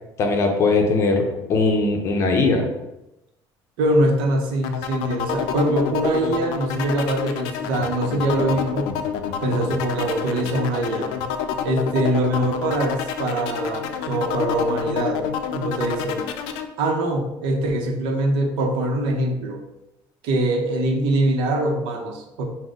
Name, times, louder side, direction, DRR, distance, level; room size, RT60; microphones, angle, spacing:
voice 1, 0.2-2.7, left 3 dB, 35° left, 3 dB, 0.6 m, -20 dB
voice 2, 3.8-8.9 9.4-11.1 11.6-15.3 15.5-16.2 16.8-19.6 20.2-22.5, right 1 dB, 70° right, 3 dB, 0.7 m, -23 dB
sound 1, 4.6-16.7, left 8 dB, 90° left, 0.4 m, -28 dB
4.8 x 2.1 x 3.9 m, 0.91 s
cardioid pair, 175°, 9 cm